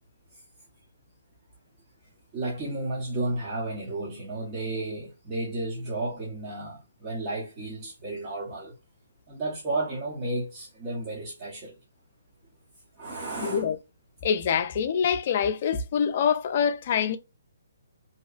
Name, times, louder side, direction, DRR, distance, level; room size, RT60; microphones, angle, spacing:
voice 1, 2.3-8.8 9.3-11.8 13.0-13.6, right 2 dB, 30° right, 0.8 m, -32 dB
voice 2, 13.4-13.8 14.2-17.2, left 7 dB, 45° left, 0.4 m, -25 dB
2.8 x 2.2 x 2.4 m
hypercardioid pair, 140°, 0 cm